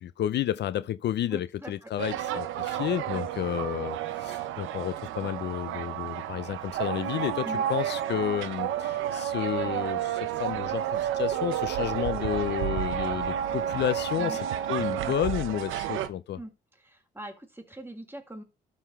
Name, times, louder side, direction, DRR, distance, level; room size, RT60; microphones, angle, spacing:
voice 1, 0.0-16.4, left 11 dB, 60° left, 0.5 m, -31 dB
voice 2, 1.3-1.7 3.1-3.2 7.4-7.6 14.2-14.4 16.4-16.5 16.8-18.4, right 1 dB, 10° right, 2.2 m, -41 dB
sound 1, 2.0-16.1, right 10 dB, 85° right, 0.8 m, -31 dB
12.0 x 4.0 x 5.6 m
cardioid pair, 90°, 20 cm